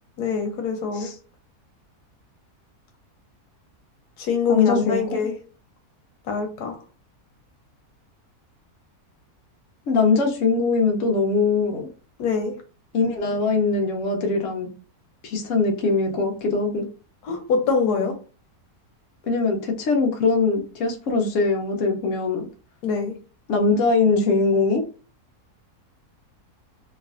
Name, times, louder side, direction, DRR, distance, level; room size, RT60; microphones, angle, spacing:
voice 1, 0.2-1.1 4.2-5.4 6.3-6.8 12.2-12.5 17.2-18.1 22.8-23.1, left 5 dB, 85° left, 1.2 m, -24 dB
voice 2, 4.5-5.1 9.9-11.9 12.9-14.7 15.2-16.8 19.2-22.5 23.5-24.8, left 4 dB, 65° left, 0.9 m, -21 dB
3.1 x 2.4 x 2.4 m
omnidirectional pair, 1.6 m